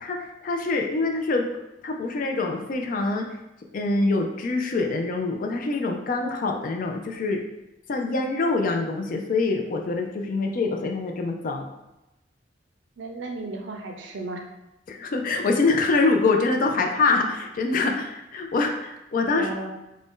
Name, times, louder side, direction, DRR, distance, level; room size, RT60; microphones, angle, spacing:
voice 1, 0.0-1.4 1.8-3.3 3.7-7.4 7.9-11.7 14.9-19.5, left 3 dB, 50° left, 3 dB, 0.4 m, -25 dB
voice 2, 13.0-14.4 19.3-19.7, right 2 dB, 75° right, 3 dB, 0.5 m, -34 dB
2.6 x 2.1 x 3.5 m, 0.95 s
head